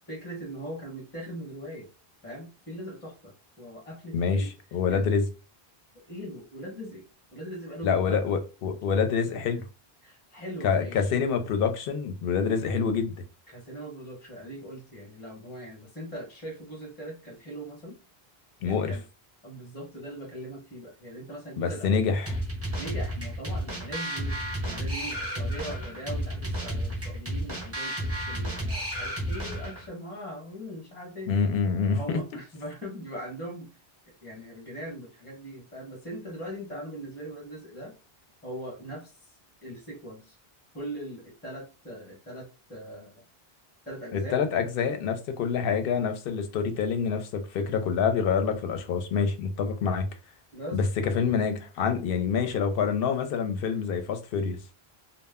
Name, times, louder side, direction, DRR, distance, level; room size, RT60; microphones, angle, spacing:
voice 1, 0.1-1.9 2.2-4.5 4.9-5.0 5.9-7.0 7.3-8.2 10.0-11.1 13.5-18.0 18.6-19.0 19.4-22.0 22.8-31.3 31.8-33.7 34.2-37.9 38.4-39.3 39.6-40.4 40.7-43.2 43.8-44.4 50.5-50.8, equal, 10° left, 0.8 m, -40 dB
voice 2, 4.1-5.3 7.8-9.7 10.6-13.1 18.6-19.0 21.6-22.4 31.3-32.0 44.1-50.1 50.7-54.6, left 6 dB, 70° left, 0.7 m, -26 dB
sound 1, 22.3-29.9, equal, 15° right, 0.6 m, -32 dB
2.1 x 2.0 x 3.4 m
omnidirectional pair, 1.0 m